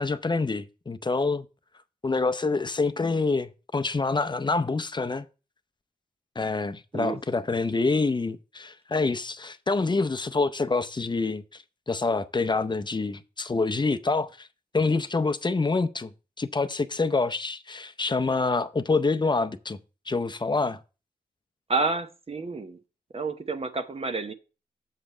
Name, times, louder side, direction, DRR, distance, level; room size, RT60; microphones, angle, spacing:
voice 1, 0.0-1.5 2.0-5.3 6.4-14.5 14.7-16.1 16.4-19.8 20.1-20.8, left 3 dB, 30° left, 0.6 m, -26 dB
voice 2, 21.7-22.8 23.1-24.3, right 3 dB, 40° right, 0.8 m, -29 dB
7.5 x 5.1 x 4.3 m
cardioid pair, 55°, 16 cm